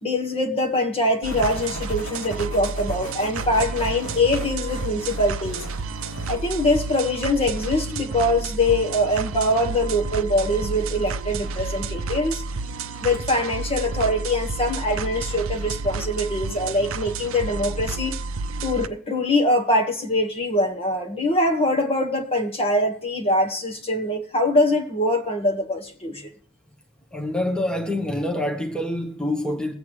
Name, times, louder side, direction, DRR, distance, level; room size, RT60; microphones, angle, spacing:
voice 1, 0.0-5.6 6.3-12.4 13.0-18.2 18.6-26.3, left 1 dB, 30° left, 1.5 m, -23 dB
sound 1, 1.2-7.1, left 1 dB, 90° left, 2.8 m, -39 dB
sound 2, 1.2-18.9, right 4 dB, 70° right, 0.6 m, -31 dB
voice 2, 27.1-29.7, left 1 dB, 5° left, 1.3 m, -26 dB
22.0 x 8.3 x 3.2 m
head